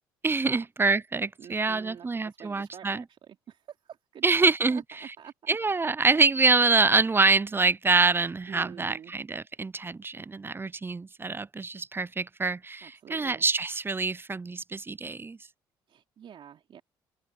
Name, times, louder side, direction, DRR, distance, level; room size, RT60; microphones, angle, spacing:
voice 1, 0.2-3.0 4.2-4.8 5.5-15.4, right 3 dB, 20° right, 0.5 m, -25 dB
voice 2, 1.4-5.6 6.1-6.2 8.5-9.1 12.8-13.5 15.9-16.8, right 9 dB, 50° right, 3.1 m, -47 dB
open air
hypercardioid pair, 55°, 11 cm